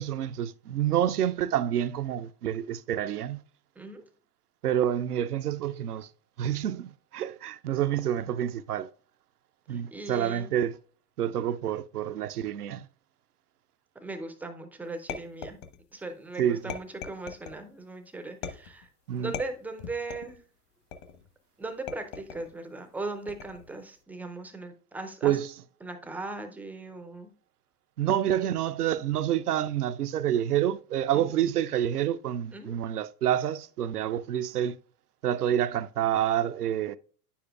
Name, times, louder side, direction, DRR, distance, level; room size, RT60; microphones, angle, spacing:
voice 1, 0.0-3.4 4.6-6.1 6.4-8.9 9.7-10.7 11.2-12.9 16.4-16.7 19.1-19.3 25.2-25.5 28.0-34.8 35.2-37.0, right 11 dB, 80° right, 0.6 m, -28 dB
voice 2, 3.8-4.1 9.7-10.5 14.0-15.6 15.9-18.9 19.2-20.4 21.6-25.4 25.8-27.3 31.1-31.3 32.5-32.9, right 2 dB, 5° right, 0.4 m, -38 dB
sound 1, 15.1-16.0 16.7-17.6 18.4-18.9 19.3-20.4 20.9-21.3 21.9-22.5 23.3-23.7, left 6 dB, 55° left, 1.2 m, -40 dB
9.6 x 7.0 x 2.4 m
figure-of-eight pair, 90°, 45 cm